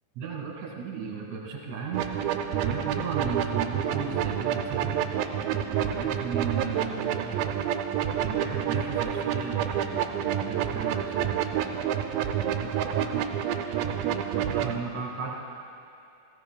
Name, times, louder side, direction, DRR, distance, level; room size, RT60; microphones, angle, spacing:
voice 1, 0.2-2.1 2.5-5.1 5.8-7.6 8.2-11.9 12.4-13.3 14.0-15.3, right 5 dB, 55° right, -2 dB, 2.9 m, -36 dB
sound 1, 1.9-14.7, right 9 dB, 85° right, 2.4 m, -28 dB
18.0 x 16.0 x 2.3 m, 2.6 s
omnidirectional pair, 4.1 m